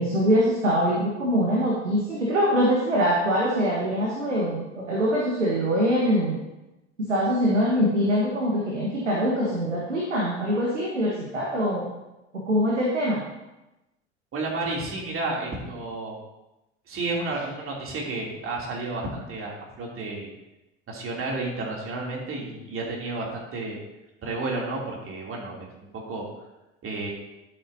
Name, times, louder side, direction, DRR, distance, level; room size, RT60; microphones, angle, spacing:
voice 1, 0.0-6.4 7.1-11.9 12.5-13.2, equal, 85° right, -3 dB, 1.5 m, -23 dB
voice 2, 14.3-16.2 16.9-20.3 20.9-23.8 24.2-26.3 26.8-27.1, right 2 dB, 35° right, -2 dB, 2.9 m, -31 dB
11.0 x 8.2 x 2.7 m, 0.98 s
figure-of-eight pair, 70°, 35 cm